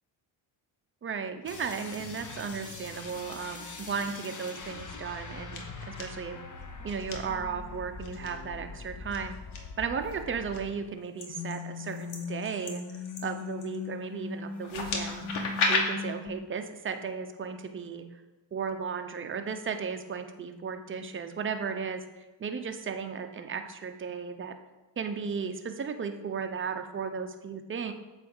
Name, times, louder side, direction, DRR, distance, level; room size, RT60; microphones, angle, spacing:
voice 1, 1.0-6.4 6.8-9.3 9.8-12.8 13.2-15.3 15.7-18.0 18.5-22.0 22.4-24.5 25.0-27.9, right 6 dB, 25° right, 7 dB, 0.6 m, -35 dB
sound 1, 1.4-11.0 11.3-16.3, left 5 dB, 35° left, 1.0 m, -41 dB
sound 2, 4.9-5.2 5.5-6.0 6.9-7.1 8.0-8.3 9.1-9.6 10.1-10.6 11.2-13.9 14.6-15.8, left 4 dB, 70° left, 1.2 m, -33 dB
7.6 x 2.6 x 5.3 m, 1.1 s
supercardioid pair, 70°, 50 cm